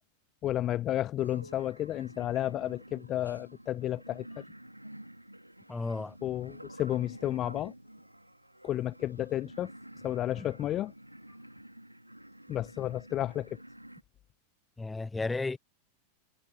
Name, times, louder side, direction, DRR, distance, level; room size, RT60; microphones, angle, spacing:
voice 1, 0.4-4.4 6.2-7.7 8.6-9.7 10.0-10.9 12.5-13.6, left 13 dB, 30° left, 0.3 m, -32 dB
sound 1, 1.2-14.0, right 1 dB, 90° right, 2.7 m, -50 dB
voice 2, 5.7-6.1 10.4-10.5 14.8-15.6, left 3 dB, 10° left, 0.7 m, -33 dB
figure-of-eight pair, 90°, 0 cm